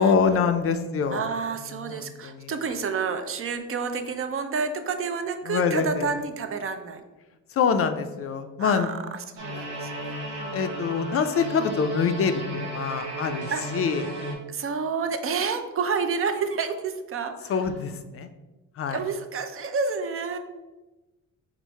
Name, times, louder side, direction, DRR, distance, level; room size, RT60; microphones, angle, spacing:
voice 1, 0.0-1.2 1.8-2.5 5.5-6.1 7.5-8.9 10.5-13.5 13.7-14.0 17.5-18.3 18.8-19.0, left 6 dB, 50° left, 9 dB, 0.4 m, -25 dB
voice 2, 1.1-7.0 8.6-10.7 13.5-13.8 14.5-17.7 18.9-20.4, right 5 dB, 45° right, 7 dB, 0.5 m, -30 dB
sound 1, 9.4-14.3, right 1 dB, 85° right, 1.0 m, -34 dB
4.5 x 2.1 x 4.4 m, 1.1 s
cardioid pair, 90°, 30 cm